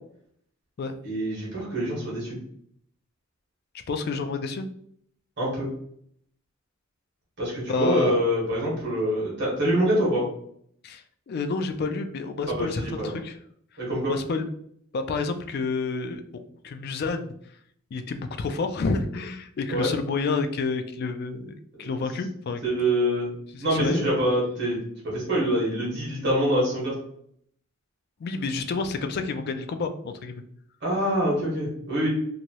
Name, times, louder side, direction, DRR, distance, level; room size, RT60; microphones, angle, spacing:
voice 1, 1.0-2.4 5.4-5.7 7.4-10.2 12.5-13.1 13.8-14.1 19.7-19.9 22.6-23.3 23.6-24.8 25.0-26.9 30.8-32.1, right 1 dB, 55° right, -5 dB, 1.4 m, -25 dB
voice 2, 3.9-4.7 7.7-8.2 10.8-13.4 14.0-14.5 14.9-17.3 17.9-22.6 23.5-24.1 28.2-30.4, left 4 dB, 50° left, 8 dB, 0.3 m, -29 dB
3.0 x 2.6 x 2.8 m, 0.68 s
head